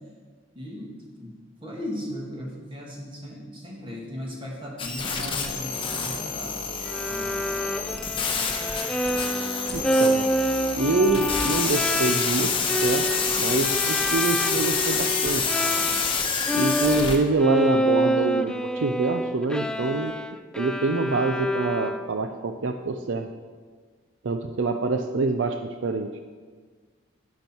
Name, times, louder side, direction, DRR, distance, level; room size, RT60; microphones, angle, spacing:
voice 1, 0.6-1.3 1.6-6.7 7.1-7.6 10.3-10.4 11.1-11.5 12.1-12.6, equal, 25° right, -2 dB, 2.1 m, -37 dB
sound 1, 4.8-17.2, left 5 dB, 25° left, 1.1 m, -27 dB
Bowed string instrument, 6.8-16.2 16.5-22.3, equal, 5° left, 0.3 m, -27 dB
voice 2, 9.7-10.3 10.8-13.1 13.4-15.6 16.5-20.1 20.6-23.3 24.2-25.6 25.8-26.1, right 3 dB, 70° right, 7 dB, 0.5 m, -25 dB
10.5 x 9.7 x 4.5 m, 1.5 s
head